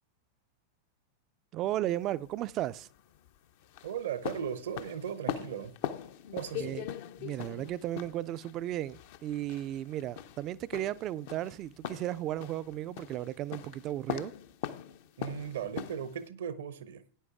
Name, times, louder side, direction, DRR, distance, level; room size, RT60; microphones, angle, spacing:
voice 1, 1.5-2.9 6.6-6.8 7.2-14.3, right 13 dB, 35° right, 0.4 m, -35 dB
sound 1, 1.9-16.3, left 10 dB, 50° left, 0.6 m, -41 dB
voice 2, 3.8-5.7 6.3-6.8 15.2-17.0, right 8 dB, 60° right, 0.7 m, -37 dB
16.5 x 9.6 x 2.4 m
figure-of-eight pair, 90°, 0 cm